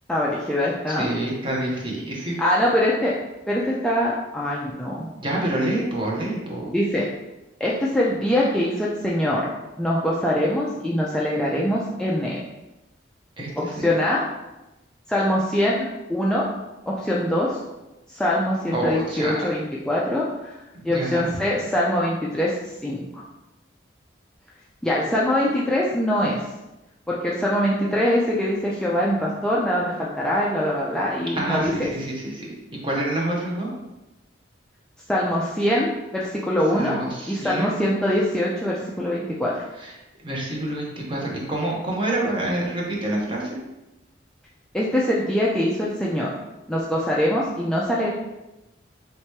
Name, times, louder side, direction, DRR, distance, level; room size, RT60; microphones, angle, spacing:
voice 1, 0.1-1.1 2.4-3.1 3.5-5.1 6.7-7.1 7.6-9.5 9.8-12.4 13.6-14.2 15.1-16.5 16.9-17.6 18.1-20.6 20.8-23.2 24.8-26.4 27.1-31.7 35.1-37.0 37.3-39.6 44.7-46.3 46.7-48.1, left 1 dB, 5° left, -6 dB, 0.4 m, -23 dB
voice 2, 0.9-2.4 5.2-6.7 13.4-13.9 18.7-19.3 20.7-21.3 31.3-32.5 32.8-33.7 36.7-37.9 39.8-39.9 40.2-43.6, right 1 dB, 25° right, -3 dB, 0.9 m, -27 dB
3.3 x 2.9 x 4.5 m, 0.99 s
head